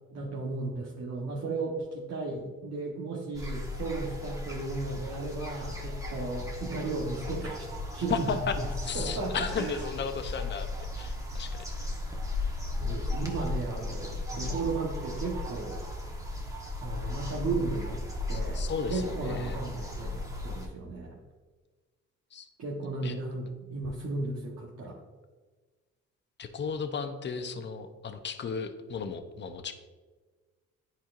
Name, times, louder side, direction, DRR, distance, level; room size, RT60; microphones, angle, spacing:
voice 1, 0.1-8.7 8.9-9.8 12.7-15.8 16.8-18.0 18.3-21.2 22.6-25.0, right 3 dB, 55° right, -4 dB, 1.2 m, -35 dB
sound 1, 3.3-20.7, left 2 dB, 10° right, 1.2 m, -36 dB
voice 2, 8.1-8.5 8.8-10.7 10.9-11.6 18.3-19.6 22.3-22.5 23.0-23.1 26.4-29.7, left 6 dB, 35° left, 8 dB, 0.7 m, -34 dB
10.0 x 4.4 x 2.5 m, 1.4 s
cardioid pair, 90°, 30 cm